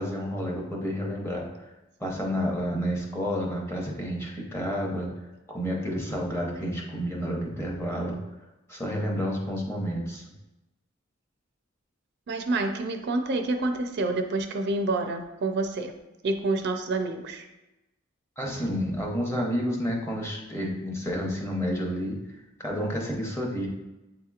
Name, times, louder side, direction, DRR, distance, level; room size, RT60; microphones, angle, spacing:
voice 1, 0.0-1.5 2.0-5.1 5.5-8.2 8.7-10.2 18.4-22.2 22.6-23.7, equal, 15° left, -1 dB, 0.8 m, -30 dB
voice 2, 12.3-15.9 16.2-17.4, right 2 dB, 60° right, 6 dB, 0.4 m, -28 dB
7.7 x 2.9 x 2.4 m, 1.0 s
head